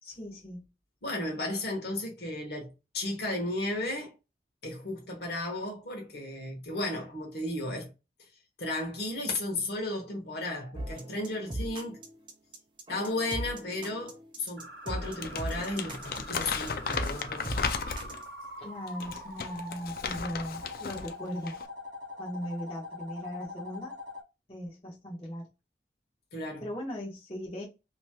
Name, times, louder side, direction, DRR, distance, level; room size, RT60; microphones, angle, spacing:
voice 1, 0.0-0.6 18.6-21.6 22.2-23.9 24.5-25.5 26.6-27.6, equal, 35° left, 1.1 m, -38 dB
voice 2, 1.0-4.1 4.6-7.9 8.6-12.0 12.9-17.6 26.3-26.6, left 1 dB, 70° left, 1.2 m, -34 dB
sound 1, 10.7-18.2, right 1 dB, 30° right, 0.5 m, -39 dB
sound 2, 14.6-24.2, left 2 dB, 75° right, 0.6 m, -44 dB
Crumpling crinkling, 15.0-18.3 18.9-21.1 21.4-21.7, left 5 dB, 55° left, 0.3 m, -35 dB
2.9 x 2.9 x 2.2 m
head